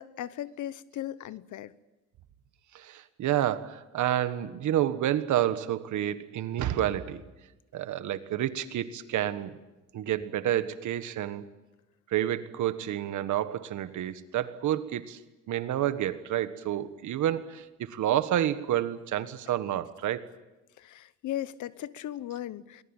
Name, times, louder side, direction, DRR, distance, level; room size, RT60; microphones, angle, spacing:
voice 1, 0.0-1.7 20.8-22.8, left 12 dB, 75° left, 1.0 m, -37 dB
voice 2, 2.7-7.2 7.7-9.6 9.9-11.5 12.1-15.2 15.5-20.3, right 12 dB, 75° right, 1.5 m, -29 dB
22.5 x 19.5 x 9.0 m
cardioid pair, 90°, 30 cm